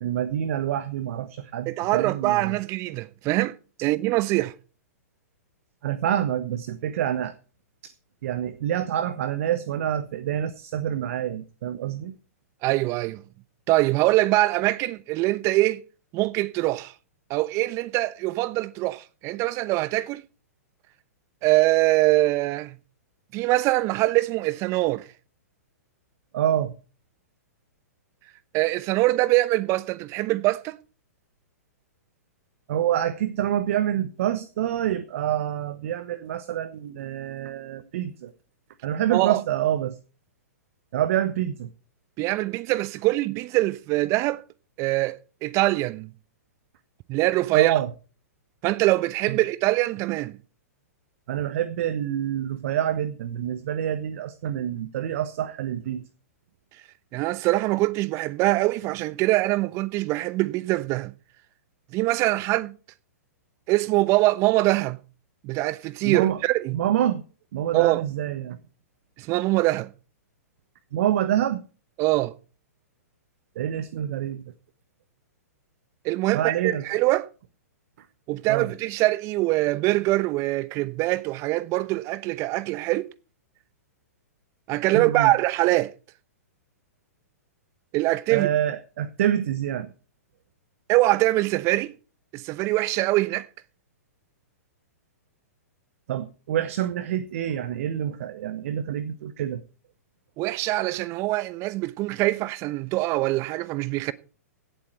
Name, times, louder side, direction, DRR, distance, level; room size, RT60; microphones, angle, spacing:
voice 1, 0.0-2.5 5.8-7.3 8.2-12.2 26.3-26.7 32.7-38.3 38.8-40.0 40.9-41.7 47.5-47.9 49.3-49.4 51.3-56.0 66.0-66.4 66.7-67.2 67.5-68.6 70.9-71.6 73.6-74.4 76.3-76.8 78.5-78.7 84.9-85.3 88.3-89.9 96.1-99.6, right 11 dB, 55° right, 1.0 m, -27 dB
voice 2, 1.7-3.5 3.8-4.5 12.6-13.2 13.7-15.8 16.1-16.9 17.3-20.2 21.4-22.8 23.3-25.1 28.5-30.8 39.1-39.4 42.2-44.4 44.8-46.1 47.1-47.8 48.6-50.4 57.1-61.1 61.9-62.7 63.7-65.0 65.4-66.8 67.7-68.0 69.2-69.9 72.0-72.3 76.0-77.3 78.3-83.1 84.7-85.9 87.9-88.5 90.9-91.9 92.3-93.5 100.4-104.1, right 18 dB, 35° right, 0.8 m, -23 dB
17.0 x 7.9 x 4.5 m
hypercardioid pair, 115°, 9 cm